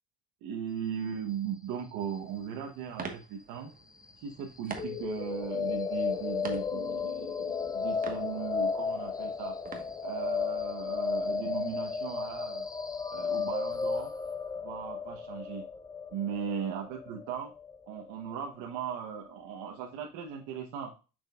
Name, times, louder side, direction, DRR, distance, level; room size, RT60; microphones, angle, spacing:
voice 1, 0.4-3.7 4.2-9.6 10.0-12.7 13.1-14.1 14.6-15.6 16.1-17.5 17.9-20.9, right 8 dB, 80° right, 1 dB, 1.1 m, -38 dB
sound 1, 2.1-10.6, right 5 dB, 25° right, 1.2 m, -47 dB
sound 2, 4.7-18.7, left 5 dB, 10° left, 0.3 m, -34 dB
6.6 x 6.1 x 2.3 m, 0.32 s
cardioid pair, 120°, 32 cm